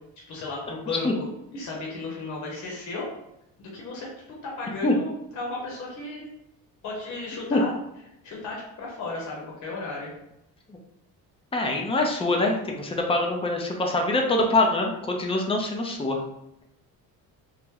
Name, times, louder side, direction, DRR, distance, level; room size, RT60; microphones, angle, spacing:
voice 1, 0.3-1.1 1.5-3.1 3.6-4.1 4.6-6.2 6.8-7.7 8.2-10.1, left 3 dB, 55° left, -3 dB, 1.0 m, -34 dB
voice 2, 11.5-16.2, left 2 dB, 15° left, 2 dB, 0.4 m, -24 dB
3.0 x 2.0 x 3.7 m, 0.85 s
cardioid pair, 135°, 36 cm